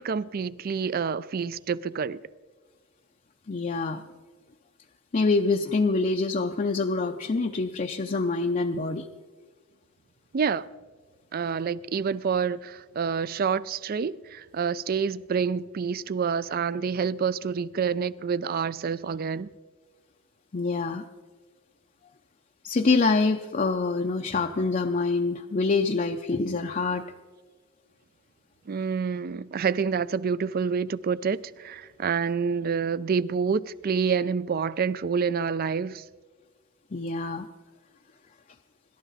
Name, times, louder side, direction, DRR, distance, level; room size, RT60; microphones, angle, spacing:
voice 1, 0.0-2.2 10.3-10.7 11.3-19.5 28.7-36.0, right 6 dB, 45° right, 0.4 m, -28 dB
voice 2, 3.5-4.0 5.1-9.1 20.5-21.0 22.6-27.0 36.9-37.5, left 3 dB, 40° left, 0.5 m, -25 dB
26.5 x 12.0 x 4.0 m
head